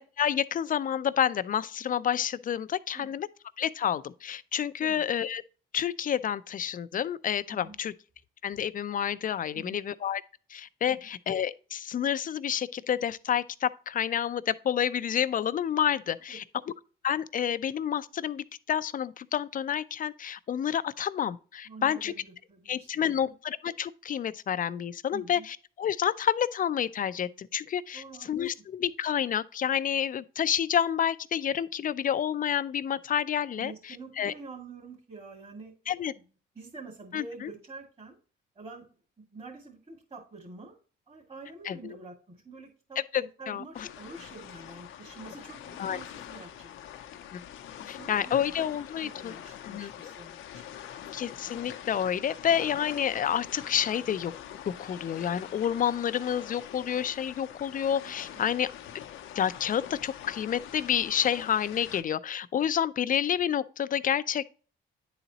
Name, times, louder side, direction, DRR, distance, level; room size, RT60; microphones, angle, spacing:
voice 1, 0.0-3.3 3.6-5.4 5.7-7.9 8.4-10.2 10.5-16.4 17.0-22.1 22.7-34.3 35.9-36.1 37.1-37.5 41.7-42.0 43.1-43.9 45.8-46.0 47.3-47.4 47.9-49.3 49.6-49.9 51.1-54.3 54.8-58.7 59.4-64.5, left 9 dB, 45° left, 0.5 m, -29 dB
voice 2, 21.7-23.0 25.1-25.4 27.9-28.6 33.5-35.7 36.2-36.3 36.5-38.2 38.5-38.8 39.2-40.8 41.1-47.0 47.8-48.7 49.0-50.7 58.0-58.1 58.5-58.6, right 3 dB, 30° right, 2.1 m, -47 dB
sound 1, 43.7-62.0, left 10 dB, 80° left, 0.7 m, -44 dB
10.0 x 4.0 x 2.9 m
cardioid pair, 90°, 20 cm